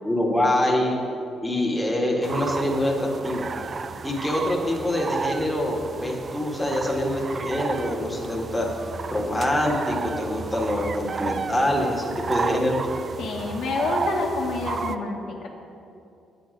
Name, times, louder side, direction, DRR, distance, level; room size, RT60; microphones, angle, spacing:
voice 1, 0.0-1.0 1.4-3.5 4.0-8.7 9.1-12.9, left 1 dB, 5° left, -1 dB, 1.6 m, -25 dB
sound 1, 2.2-15.0, right 5 dB, 40° right, 0.4 m, -32 dB
voice 2, 13.2-15.5, left 3 dB, 80° left, -1 dB, 1.3 m, -28 dB
9.2 x 8.2 x 5.2 m, 2.7 s
cardioid pair, 90°, 0 cm